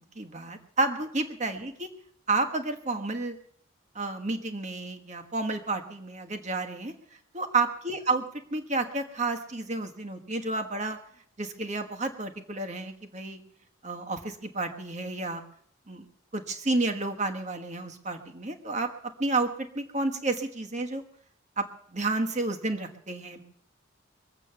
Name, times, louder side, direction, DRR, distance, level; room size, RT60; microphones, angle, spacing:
voice 1, 0.2-1.9 2.3-3.4 3.9-6.9 7.3-8.2 8.5-11.0 11.4-13.4 13.8-15.4 15.9-16.0 16.3-18.9 19.2-21.0 21.6-21.7 21.9-23.4, right 3 dB, 35° right, 5 dB, 1.4 m, -30 dB
22.5 x 8.2 x 6.9 m, 0.64 s
head